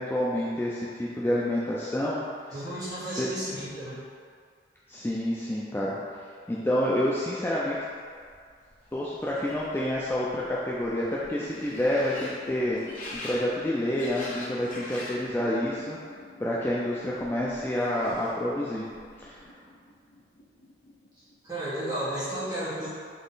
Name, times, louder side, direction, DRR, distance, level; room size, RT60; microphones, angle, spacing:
voice 1, 0.0-2.2 3.2-3.3 4.9-7.8 8.9-12.8 13.2-16.0 16.4-18.8 19.2-19.4, left 1 dB, 10° left, -6 dB, 0.3 m, -28 dB
voice 2, 2.5-4.0 21.5-22.9, right 1 dB, 20° right, -13 dB, 1.3 m, -33 dB
sound 1, 7.8-7.9 8.0-15.3 15.6-16.2 17.1-18.5 18.8-19.4, left 1 dB, 50° left, 0.8 m, -44 dB
sound 2, 11.3-21.6, left 1 dB, 85° left, 0.8 m, -50 dB
3.8 x 3.0 x 3.9 m, 2.1 s
head